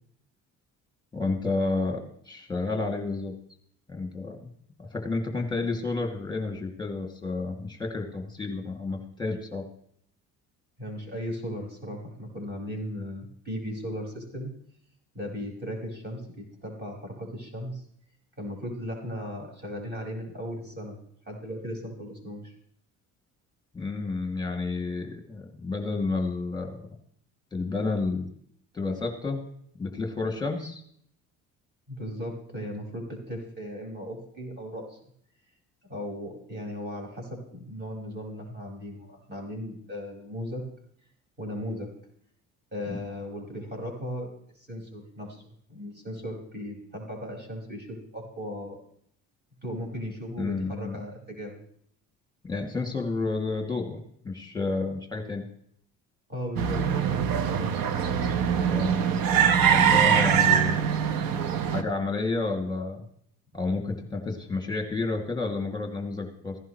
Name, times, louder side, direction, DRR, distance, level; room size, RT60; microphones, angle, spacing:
voice 1, 1.1-3.3 3.9-4.5 4.8-9.7 23.7-26.9 27.5-28.3 28.7-29.4 29.8-30.8 42.9-43.0 50.4-51.0 52.4-55.4 58.7-59.0 59.7-60.9 61.7-63.0 63.5-66.6, left 3 dB, 10° left, 3 dB, 2.5 m, -30 dB
voice 2, 10.8-14.5 15.1-17.8 18.4-22.5 31.9-35.0 35.9-40.7 41.4-41.9 42.7-48.8 49.6-51.6 56.3-57.8, equal, 25° right, 0 dB, 5.5 m, -37 dB
sound 1, 56.6-61.8, right 8 dB, 65° right, 1.1 m, -23 dB
15.5 x 11.0 x 3.2 m, 0.65 s
supercardioid pair, 70°, 37 cm